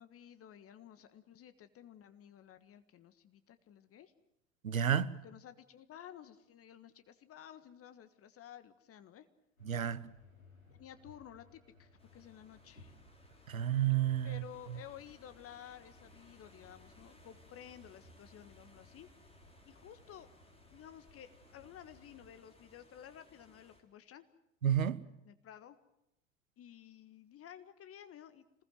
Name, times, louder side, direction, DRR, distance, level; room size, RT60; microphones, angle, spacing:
voice 1, 0.0-4.1 5.2-9.2 10.7-12.9 14.2-19.1 19.7-20.3 20.7-24.3 25.2-25.8 26.6-28.4, left 10 dB, 35° left, 1.6 m, -54 dB
voice 2, 4.6-5.2 9.6-10.1 13.5-14.4 24.6-25.0, right 10 dB, 80° right, 1.1 m, -31 dB
sound 1, 9.6-22.3, left 2 dB, 90° left, 5.2 m, -63 dB
sound 2, 12.0-23.8, left 2 dB, 15° left, 4.8 m, -64 dB
27.0 x 21.0 x 7.6 m
figure-of-eight pair, 75°, 40 cm